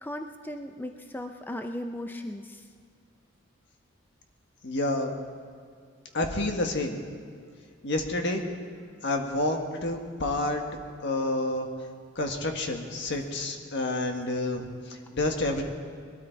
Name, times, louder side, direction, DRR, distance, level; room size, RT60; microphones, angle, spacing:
voice 1, 0.0-2.6, left 1 dB, 10° left, 5 dB, 0.5 m, -37 dB
voice 2, 4.6-5.1 6.1-7.0 7.8-8.4 9.0-10.6 11.0-11.7 12.1-15.6, left 2 dB, 60° left, 4 dB, 1.6 m, -29 dB
21.0 x 13.0 x 4.6 m, 2.1 s
head